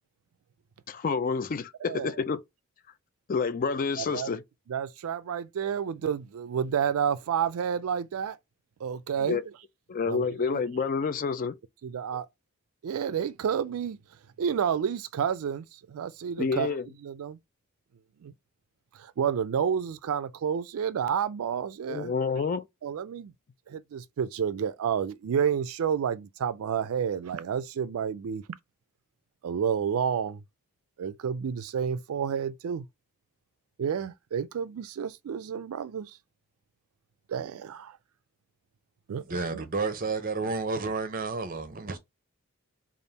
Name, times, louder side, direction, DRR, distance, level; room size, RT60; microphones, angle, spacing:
voice 1, 0.9-2.4 3.3-4.4 9.2-9.4 9.9-11.6 16.4-16.9 21.9-22.7, left 5 dB, 40° left, 0.3 m, -28 dB
voice 2, 4.0-4.3 4.7-8.4 8.8-9.4 10.1-10.6 11.8-12.3 12.8-14.0 14.4-16.8 17.0-17.4 18.2-18.3 19.0-22.1 22.8-23.3 23.7-28.4 29.4-30.4 31.0-32.9 33.8-36.1 37.3-37.9 39.1-39.6, right 7 dB, 75° right, 0.3 m, -30 dB
voice 3, 39.3-42.0, right 4 dB, 40° right, 0.6 m, -31 dB
3.5 x 2.4 x 4.0 m
head